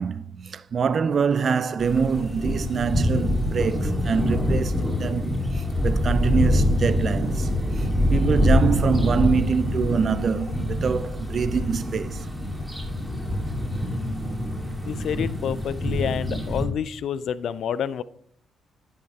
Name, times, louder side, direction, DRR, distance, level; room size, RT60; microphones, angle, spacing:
voice 1, 0.0-7.5 7.8-12.3, right 6 dB, 50° right, 0.4 m, -25 dB
sound 1, 1.8-16.7, left 1 dB, ahead, 2.5 m, -25 dB
voice 2, 14.8-18.0, left 8 dB, 65° left, 0.4 m, -28 dB
10.5 x 7.2 x 3.2 m
hypercardioid pair, 40°, 0 cm